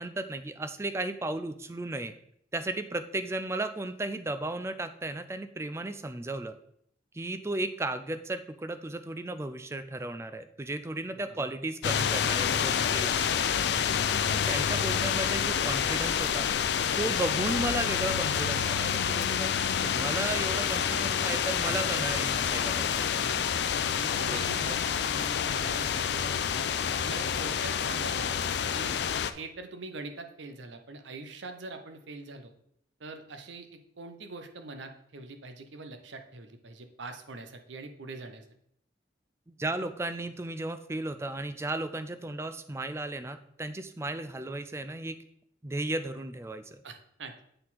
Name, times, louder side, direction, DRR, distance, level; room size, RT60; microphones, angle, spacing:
voice 1, 0.0-2.1 2.5-6.6 7.1-13.3 14.3-16.5 16.9-23.1 24.2-24.4 39.5-45.2 45.6-46.8, right 2 dB, 15° right, 10 dB, 0.3 m, -35 dB
sound 1, 11.8-29.3, left 8 dB, 65° left, 0.4 m, -28 dB
voice 2, 23.1-23.6 23.9-26.6 27.0-28.4 28.7-29.0 29.3-32.5 33.0-38.4 46.8-47.4, right 3 dB, 80° right, 7 dB, 0.8 m, -43 dB
7.7 x 4.3 x 4.1 m, 0.70 s
head